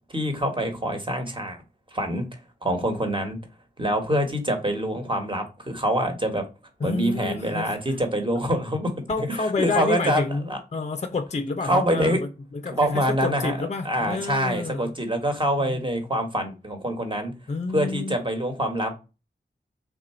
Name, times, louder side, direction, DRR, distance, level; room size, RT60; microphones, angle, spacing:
voice 1, 0.1-1.6 1.9-2.3 2.6-3.4 3.8-6.5 6.8-8.9 9.3-10.6 11.7-12.2 12.7-13.6 13.8-17.3 17.7-19.0, equal, 25° right, 1.3 m, -25 dB
voice 2, 6.8-8.0 9.1-14.9 15.6-15.9 17.5-18.2, left 3 dB, 35° left, 0.5 m, -29 dB
3.6 x 2.5 x 4.3 m
cardioid pair, 50°, 19 cm